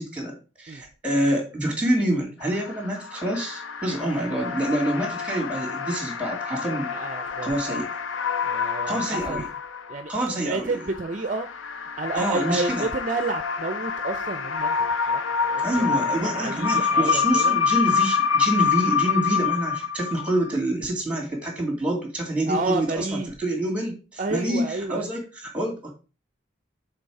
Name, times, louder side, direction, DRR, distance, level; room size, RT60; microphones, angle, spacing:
voice 1, 0.0-6.9 7.4-7.9 8.9-9.4 10.1-10.7 12.2-12.9 15.6-25.9, right 1 dB, 5° right, 2.1 m, -27 dB
sound 1, 2.4-10.2 10.7-20.5, left 6 dB, 80° left, 0.6 m, -27 dB
voice 2, 6.9-7.8 8.4-9.4 9.9-10.1 10.4-11.5 12.0-17.6 22.4-23.3 24.2-25.1, right 3 dB, 40° right, 0.5 m, -30 dB
6.7 x 3.9 x 4.7 m
head